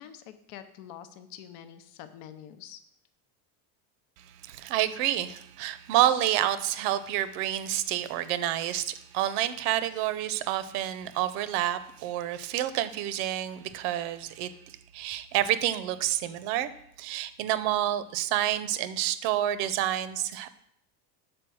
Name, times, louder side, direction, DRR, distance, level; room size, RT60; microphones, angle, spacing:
voice 1, 0.0-2.8, left 10 dB, 65° left, 10 dB, 0.7 m, -46 dB
voice 2, 4.4-16.7 17.0-20.5, right 12 dB, 85° right, 13 dB, 0.7 m, -28 dB
6.1 x 4.5 x 6.2 m, 0.72 s
cardioid pair, 170°, 45 cm